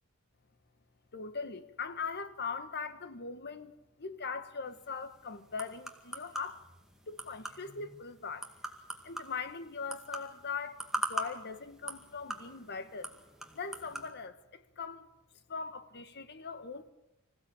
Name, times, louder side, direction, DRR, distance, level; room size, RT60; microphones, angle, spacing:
voice 1, 1.1-3.7 4.0-6.7 7.1-8.5 9.0-10.8 11.1-13.1 13.5-15.1 15.5-16.9, left 5 dB, 50° left, 1.4 m, -40 dB
sound 1, 4.7-14.1, right 1 dB, ahead, 2.1 m, -43 dB
26.0 x 16.0 x 8.9 m
head